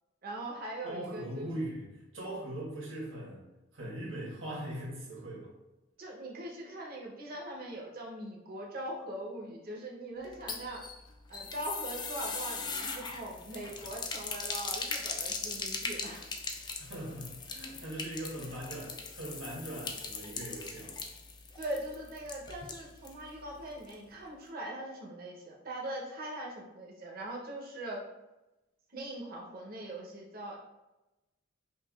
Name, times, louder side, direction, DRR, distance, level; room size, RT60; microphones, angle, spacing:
voice 1, 0.2-1.5 6.0-10.9 11.3-16.3 21.6-28.0 28.9-30.6, right 1 dB, 50° right, -2 dB, 0.7 m, -41 dB
voice 2, 0.8-1.9 2.1-5.5 16.8-21.0, right 1 dB, 85° right, -4 dB, 1.3 m, -40 dB
sound 1, 10.2-23.2 23.5-23.6 23.9-24.0, left 4 dB, 20° left, 0.3 m, -39 dB
5.4 x 2.3 x 2.3 m, 1.0 s
head